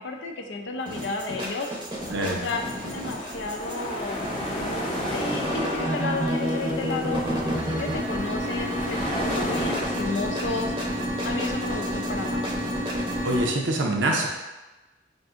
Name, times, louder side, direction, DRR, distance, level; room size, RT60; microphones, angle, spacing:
voice 1, 0.0-1.7 2.2-4.2 4.6-4.8 5.1-10.7 11.2-12.5, left 3 dB, 75° left, 3 dB, 0.5 m, -32 dB
sound 1, 0.9-13.5, equal, 25° right, 0.7 m, -30 dB
sound 2, 1.9-10.0, equal, 25° left, 0.7 m, -33 dB
voice 2, 2.1-2.5 13.2-14.3, right 1 dB, 80° right, 1 dB, 0.6 m, -25 dB
5.8 x 2.6 x 2.4 m, 1.1 s
head